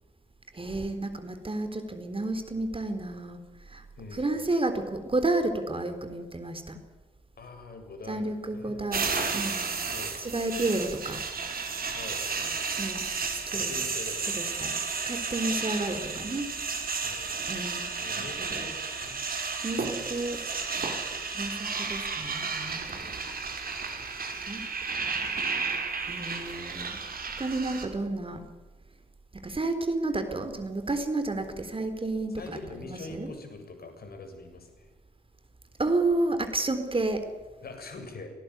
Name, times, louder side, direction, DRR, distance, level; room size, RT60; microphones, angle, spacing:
voice 1, 0.5-3.4 3.7-3.8 4.1-6.8 8.1-9.6 10.2-11.2 12.8-13.7 14.4-14.7 15.1-16.5 17.5-17.9 18.4-18.7 19.6-20.5 21.3-23.1 23.8-24.0 24.5-25.5 26.0-27.0 27.4-28.5 29.3-33.3 35.8-37.2, right 2 dB, 25° right, 8 dB, 4.0 m, -31 dB
voice 2, 4.0-4.5 7.4-8.8 9.9-10.5 11.9-12.7 13.5-14.9 17.0-17.5 18.0-19.2 22.9-23.5 32.4-34.9 37.6-38.3, left 3 dB, 50° left, 7 dB, 7.5 m, -44 dB
sound 1, 8.9-27.9, right 4 dB, 45° right, 4.8 m, -32 dB
26.0 x 19.0 x 9.6 m, 1.2 s
hypercardioid pair, 45°, 21 cm